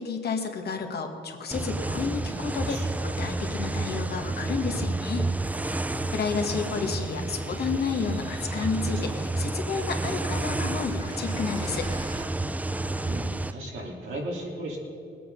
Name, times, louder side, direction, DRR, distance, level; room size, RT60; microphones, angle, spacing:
voice 1, 0.0-5.2 6.1-11.9, left 5 dB, 55° left, 4 dB, 1.7 m, -31 dB
sound 1, 1.5-13.5, right 2 dB, 10° right, 0.4 m, -30 dB
sound 2, 2.3-12.2, right 2 dB, 25° right, 2.1 m, -50 dB
voice 2, 13.0-14.8, right 1 dB, 85° right, -1 dB, 2.8 m, -36 dB
20.0 x 8.5 x 5.3 m, 2.7 s
cardioid pair, 90°, 20 cm